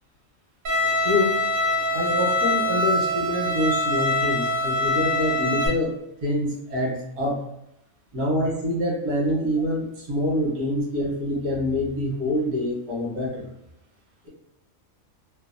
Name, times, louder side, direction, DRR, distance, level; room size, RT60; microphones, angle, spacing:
Bowed string instrument, 0.6-5.7, left 1 dB, 60° right, 0.6 m, -24 dB
voice 1, 1.0-1.4 1.9-7.4 8.1-13.5, left 1 dB, 90° right, -3 dB, 1.4 m, -26 dB
3.1 x 2.1 x 2.5 m, 0.88 s
omnidirectional pair, 1.5 m